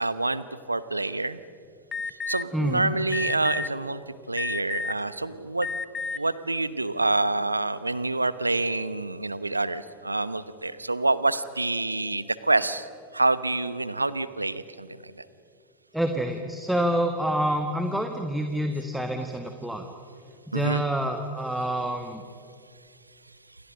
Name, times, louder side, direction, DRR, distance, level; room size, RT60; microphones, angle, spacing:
voice 1, 0.0-1.4 2.3-4.0 4.3-5.7 6.1-12.9 13.1-15.1 20.5-20.8, right 2 dB, 80° right, 16 dB, 1.0 m, -27 dB
Alarm, 1.9-2.4 3.1-3.7 4.4-5.0 5.6-6.2, left 5 dB, 20° left, 1.0 m, -31 dB
voice 2, 2.5-2.9 15.9-19.8 20.5-22.2, right 1 dB, 5° right, 5 dB, 1.6 m, -27 dB
28.0 x 27.5 x 6.5 m, 2.4 s
figure-of-eight pair, 90°, 0 cm